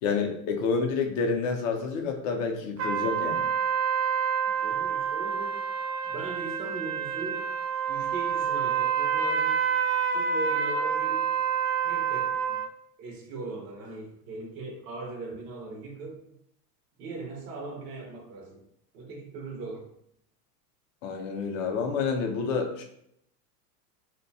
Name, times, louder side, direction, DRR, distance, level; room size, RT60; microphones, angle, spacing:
voice 1, 0.0-3.5 21.0-22.8, left 5 dB, 55° left, 3 dB, 0.6 m, -29 dB
sound 1, 2.8-12.7, right 7 dB, 90° right, 0.8 m, -28 dB
voice 2, 4.5-5.7 6.1-7.5 7.9-9.6 10.1-11.3 11.8-12.6 13.0-16.4 17.0-18.6 18.9-19.9, right 3 dB, 25° right, -1 dB, 0.4 m, -39 dB
2.6 x 2.2 x 2.6 m, 0.73 s
supercardioid pair, 150°, 48 cm